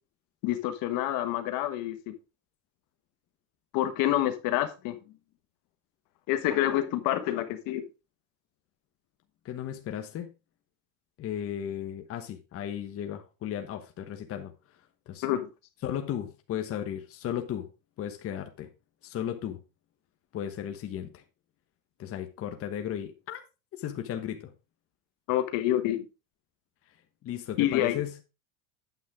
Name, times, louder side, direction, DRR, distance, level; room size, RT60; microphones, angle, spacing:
voice 1, 0.4-2.1 3.7-5.0 6.3-7.8 15.2-15.5 25.3-26.1 27.6-28.0, left 13 dB, 55° left, 1.4 m, -27 dB
voice 2, 9.4-10.3 11.2-14.5 15.1-15.3 15.8-17.7 18.0-18.7 19.0-19.6 20.3-21.2 22.0-23.4 23.8-24.5 27.2-28.1, left 10 dB, 35° left, 1.2 m, -35 dB
9.4 x 7.5 x 3.6 m
supercardioid pair, 135°, 39 cm